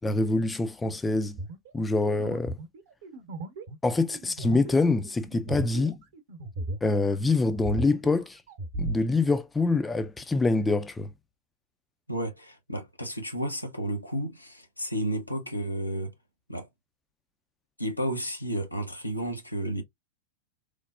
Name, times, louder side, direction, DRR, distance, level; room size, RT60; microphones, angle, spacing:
voice 1, 0.0-1.4 1.7-2.6 3.8-6.0 6.8-8.4 8.8-11.1, left 3 dB, 10° left, 0.3 m, -25 dB
sound 1, 1.4-7.1 7.4-9.0, right 1 dB, 55° right, 0.8 m, -36 dB
voice 2, 12.1-16.1 16.5-16.7 17.8-19.8, right 1 dB, 85° left, 0.6 m, -32 dB
3.2 x 2.0 x 2.3 m
figure-of-eight pair, 90°, 0 cm